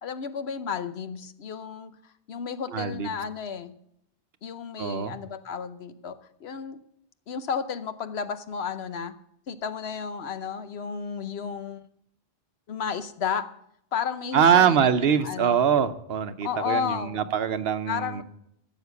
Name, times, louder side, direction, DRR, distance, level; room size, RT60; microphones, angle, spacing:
voice 1, 0.0-3.7 4.4-6.8 7.3-9.1 9.5-11.9 12.7-13.5 13.9-15.6 16.4-17.2 17.9-18.2, left 6 dB, 85° left, 11 dB, 1.1 m, -33 dB
voice 2, 2.7-3.1 4.8-5.2 14.3-18.2, right 8 dB, 75° right, 11 dB, 1.0 m, -23 dB
14.5 x 7.3 x 7.0 m, 0.74 s
omnidirectional pair, 1.0 m